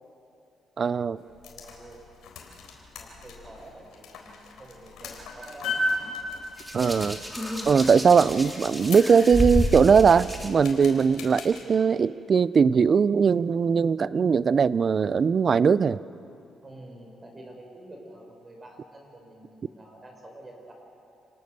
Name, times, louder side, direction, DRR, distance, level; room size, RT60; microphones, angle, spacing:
voice 1, 0.8-1.2 6.7-7.2 7.6-16.0, right 6 dB, 45° right, 18 dB, 0.5 m, -20 dB
sound 1, 1.2-11.6, left 2 dB, 80° left, 3.9 m, -37 dB
voice 2, 1.4-2.3 2.9-6.0 16.6-20.7, right 1 dB, 25° right, 1 dB, 6.0 m, -48 dB
Hands, 6.6-10.5 11.5-11.8, left 1 dB, 5° right, 3.0 m, -30 dB
28.5 x 19.0 x 6.8 m, 2.7 s
cardioid pair, 90°, 0 cm